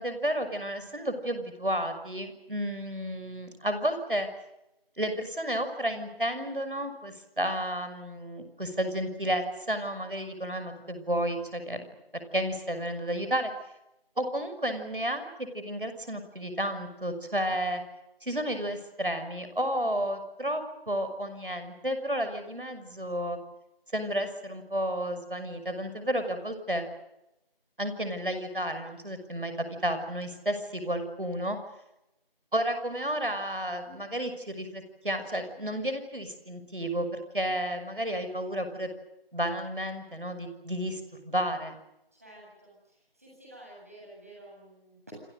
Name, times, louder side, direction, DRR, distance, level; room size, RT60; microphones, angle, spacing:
voice 1, 0.0-4.3 5.0-11.9 12.3-13.5 14.2-17.8 18.2-23.4 23.9-26.9 27.8-31.6 32.5-38.9 39.3-41.8, equal, 60° right, 8 dB, 6.2 m, -32 dB
voice 2, 42.1-45.0, right 1 dB, 15° right, -4 dB, 7.7 m, -51 dB
27.5 x 27.0 x 6.6 m, 0.90 s
figure-of-eight pair, 180°, 30 cm